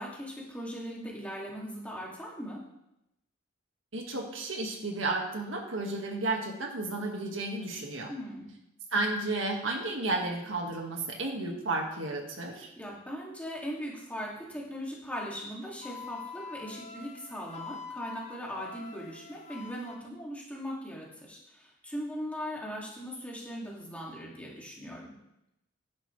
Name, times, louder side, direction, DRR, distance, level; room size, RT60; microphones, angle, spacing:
voice 1, 0.0-2.6 8.1-8.5 12.8-25.1, equal, 5° left, -4 dB, 2.3 m, -39 dB
voice 2, 3.9-8.1 8.9-12.7, right 2 dB, 75° right, 1 dB, 1.8 m, -32 dB
Wind instrument woodwind instrument, 15.8-20.0, left 5 dB, 35° left, 0.9 m, -45 dB
12.0 x 10.5 x 3.3 m, 0.86 s
head